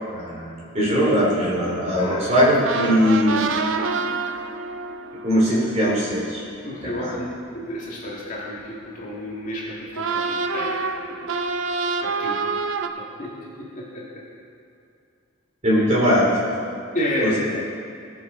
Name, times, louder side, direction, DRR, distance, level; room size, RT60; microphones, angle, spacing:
voice 1, 0.1-3.4 5.2-6.4 7.0-7.1 15.6-16.4 17.2-17.3, equal, 30° right, -6 dB, 3.2 m, -20 dB
voice 2, 2.0-2.3 2.8-3.0 6.6-10.7 11.1-11.3 12.0-12.4 12.9-14.0 16.9-17.3, left 1 dB, 35° left, -6 dB, 2.2 m, -31 dB
sound 1, 2.6-7.4 9.9-12.9, right 4 dB, 65° right, 0.6 m, -27 dB
18.5 x 7.3 x 3.9 m, 2.5 s
head